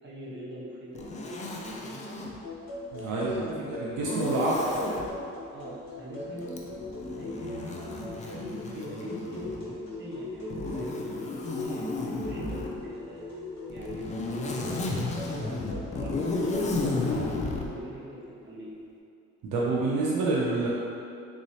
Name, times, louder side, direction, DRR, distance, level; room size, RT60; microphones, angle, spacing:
voice 1, 0.0-2.0 3.0-3.6 4.2-4.7 5.5-6.6 7.2-12.6 12.9-13.4 13.7-14.9 15.2-18.8, equal, 35° right, -7 dB, 1.0 m, -42 dB
Zipper (clothing), 0.9-2.4 4.0-5.1 6.5-9.7 10.5-12.8 13.7-17.7, left 2 dB, 25° left, 0.4 m, -33 dB
sound 1, 2.4-16.9, left 2 dB, 65° left, 1.2 m, -40 dB
voice 2, 2.9-4.5 19.4-20.7, right 3 dB, 75° right, -5 dB, 0.6 m, -28 dB
3.6 x 3.1 x 2.8 m, 2.6 s
cardioid pair, 90°, 30 cm